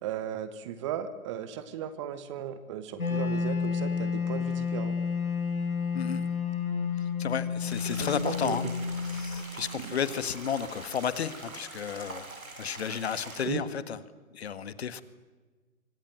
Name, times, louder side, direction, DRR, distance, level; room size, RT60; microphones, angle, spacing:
voice 1, 0.0-5.0 7.9-8.6 9.8-10.0 13.4-13.6, right 9 dB, 20° right, 12 dB, 1.2 m, -36 dB
Wind instrument woodwind instrument, 3.0-10.0, left 6 dB, 80° left, 7.3 m, -31 dB
voice 2, 5.9-6.3 7.2-8.6 9.0-12.3 12.6-14.0 14.3-15.0, left 8 dB, 50° left, 14 dB, 1.7 m, -32 dB
sound 1, 7.7-13.5, right 3 dB, 75° right, 7.0 m, -44 dB
25.0 x 24.5 x 7.8 m, 1.3 s
figure-of-eight pair, 140°, 42 cm